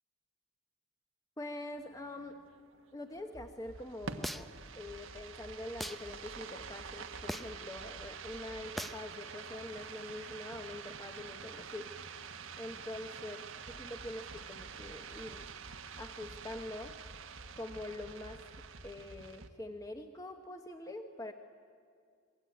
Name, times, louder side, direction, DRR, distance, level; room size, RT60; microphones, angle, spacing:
voice 1, 1.4-2.4 2.9-4.5 4.8-12.0 12.6-13.4 13.7-15.5 16.0-17.0 17.5-21.3, left 1 dB, 15° left, 5 dB, 1.1 m, -44 dB
sound 1, 1.7-19.5, right 5 dB, 85° right, 1.4 m, -47 dB
sound 2, 4.2-4.7 5.8-6.0 7.3-7.6 8.8-9.0, equal, ahead, 0.6 m, -39 dB
27.0 x 22.0 x 9.3 m, 2.2 s
head